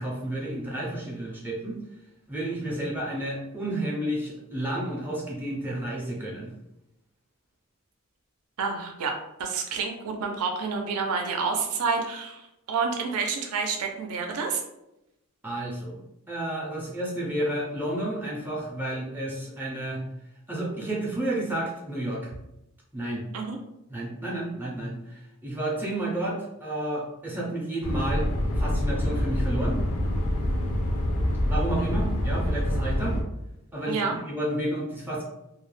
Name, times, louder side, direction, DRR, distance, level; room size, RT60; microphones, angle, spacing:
voice 1, 0.0-1.8 2.3-6.5 15.4-16.0 16.3-20.0 20.5-22.3 22.9-23.2 23.9-28.3 28.5-29.8 31.5-33.2 33.7-35.2, right 1 dB, 10° right, -4 dB, 0.4 m, -31 dB
voice 2, 8.6-14.6 23.3-23.6 31.9-32.0 33.9-34.2, right 5 dB, 75° right, 3 dB, 0.4 m, -29 dB
sound 1, 27.8-33.2, left 1 dB, 70° left, 0.5 m, -26 dB
2.2 x 2.0 x 3.1 m, 0.88 s
head